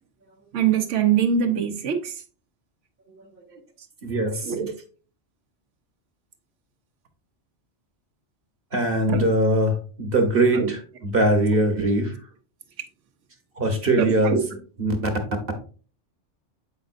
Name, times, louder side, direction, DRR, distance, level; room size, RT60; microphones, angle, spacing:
voice 1, 0.5-2.1 4.4-4.8 9.1-9.3 10.5-10.7 11.5-11.9 14.0-14.4, right 7 dB, 85° right, 1.2 m, -23 dB
voice 2, 4.0-4.6 8.7-12.1 13.6-14.4 14.8-15.0, right 1 dB, 55° right, 1.2 m, -21 dB
7.9 x 5.1 x 2.5 m
omnidirectional pair, 1.2 m